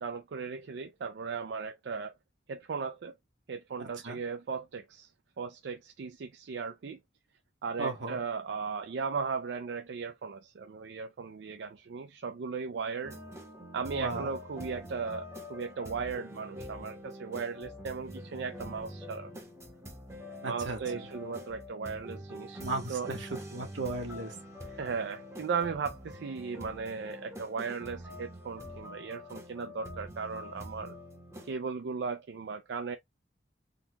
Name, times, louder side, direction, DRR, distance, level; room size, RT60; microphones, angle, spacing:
voice 1, 0.0-2.1 2.5-3.1 3.5-5.1 5.4-7.0 7.6-13.2 13.7-19.3 20.4-22.6 22.9-23.1 24.8-30.9 31.4-33.0, right 5 dB, 70° right, 0.4 m, -37 dB
voice 2, 3.8-4.2 7.8-8.2 13.9-14.3 20.4-21.0 22.6-24.3, right 2 dB, 90° right, 1.2 m, -36 dB
sound 1, 13.0-31.5, equal, 15° right, 0.8 m, -45 dB
3.9 x 2.2 x 2.8 m
head